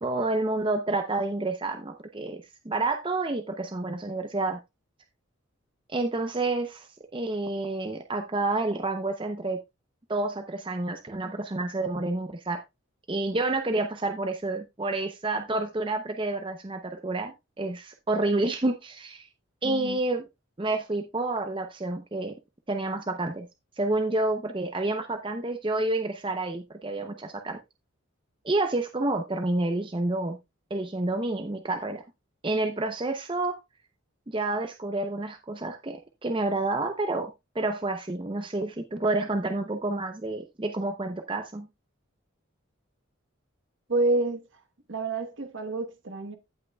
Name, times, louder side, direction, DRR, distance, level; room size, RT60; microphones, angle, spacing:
voice 1, 0.0-4.6 5.9-9.6 10.1-12.6 13.1-19.3 19.6-20.2 20.6-22.4 22.7-23.5 23.8-27.6 28.4-30.4 30.7-32.0 32.4-33.6 34.3-41.7, right 2 dB, 25° right, 0.6 m, -29 dB
voice 2, 19.6-20.0 43.9-44.6 44.9-46.4, right 2 dB, 60° right, 1.2 m, -28 dB
16.0 x 5.7 x 2.3 m
head